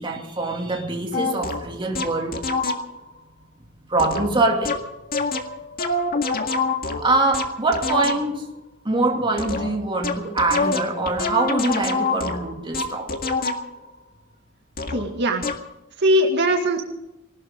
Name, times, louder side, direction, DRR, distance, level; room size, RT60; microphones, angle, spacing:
voice 1, 0.0-2.4 3.9-4.8 7.0-8.5 8.8-13.2, right 2 dB, 25° right, 2.5 m, -23 dB
sound 1, 1.1-3.1 4.0-8.5 9.4-13.9 14.8-15.1 15.4-15.7, left 3 dB, 45° left, 1.9 m, -27 dB
voice 2, 14.9-15.5 16.0-16.8, equal, 55° right, 2.0 m, -20 dB
19.5 x 18.5 x 3.7 m
head